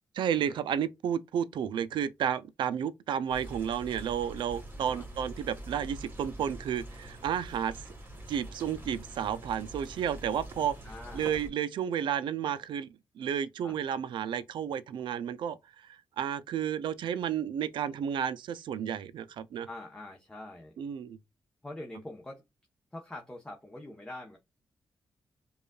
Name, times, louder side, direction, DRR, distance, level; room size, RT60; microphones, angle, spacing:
voice 1, 0.1-7.8 8.3-10.8 11.1-12.9 13.2-19.7 20.8-21.2, right 9 dB, 85° right, 0.4 m, -32 dB
sound 1, 3.3-11.5, right 1 dB, 25° right, 1.5 m, -45 dB
voice 2, 10.8-11.3 13.6-13.8 19.7-20.8 21.6-22.4 22.9-24.4, left 1 dB, 10° left, 0.9 m, -44 dB
5.1 x 2.4 x 2.3 m
cardioid pair, 80°, 8 cm